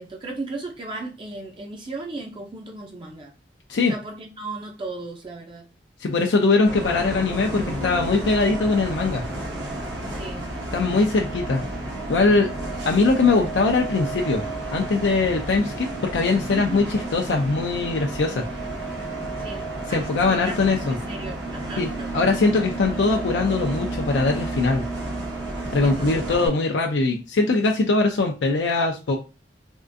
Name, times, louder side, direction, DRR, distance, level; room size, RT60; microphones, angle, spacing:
voice 1, 0.0-3.3 3.9-5.6 10.1-10.5 16.5-16.9 19.4-22.1 25.8-26.2, right 2 dB, 30° right, 1 dB, 0.4 m, -36 dB
voice 2, 6.0-9.2 10.7-11.6 12.1-12.5 12.8-14.4 14.7-18.4 19.9-21.0 21.8-24.8 25.7-29.2, left 3 dB, 85° left, 2 dB, 0.4 m, -21 dB
Bus, 6.7-26.5, right 2 dB, 75° right, 1.0 m, -31 dB
3.6 x 2.4 x 2.5 m, 0.31 s
head